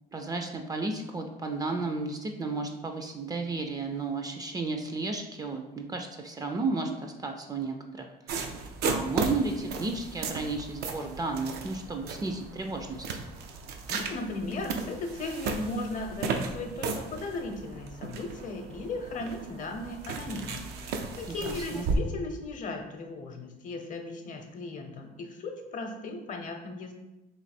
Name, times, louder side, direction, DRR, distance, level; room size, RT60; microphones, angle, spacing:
voice 1, 0.1-8.4 8.8-13.1 21.3-21.9, right 3 dB, 20° right, 4 dB, 0.4 m, -33 dB
sound 1, 8.3-22.0, right 4 dB, 75° right, 0.5 m, -35 dB
voice 2, 13.9-26.9, left 2 dB, 50° left, 4 dB, 0.7 m, -37 dB
3.1 x 2.8 x 4.2 m, 1.0 s
cardioid pair, 110°, 17 cm